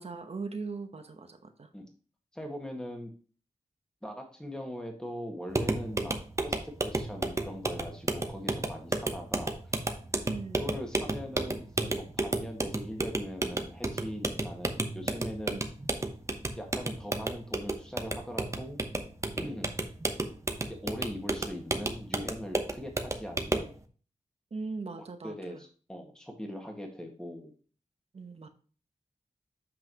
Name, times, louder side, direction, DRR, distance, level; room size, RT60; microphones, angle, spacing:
voice 1, 0.0-1.7 10.2-10.8 15.5-15.6 24.5-25.6 28.1-28.5, right 4 dB, 55° right, 7 dB, 1.0 m, -39 dB
voice 2, 2.3-3.1 4.0-6.1 6.4-9.5 10.6-15.6 16.6-18.8 19.4-19.7 20.7-23.7 25.2-27.5, equal, 5° left, 2 dB, 1.8 m, -41 dB
sound 1, 5.5-23.7, right 2 dB, 25° right, 0.9 m, -33 dB
7.8 x 5.7 x 3.0 m, 0.39 s
wide cardioid pair, 125°, 13 cm